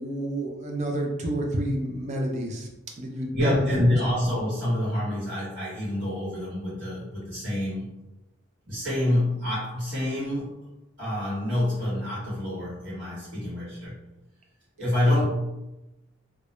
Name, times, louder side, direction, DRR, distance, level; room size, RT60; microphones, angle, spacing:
voice 1, 0.0-2.7 3.0-3.9, right 1 dB, 35° right, 1 dB, 0.4 m, -28 dB
voice 2, 3.3-7.9 8.7-10.5 11.0-14.0 14.8-15.3, left 1 dB, 60° right, -9 dB, 1.1 m, -27 dB
2.2 x 2.0 x 2.9 m, 0.97 s
head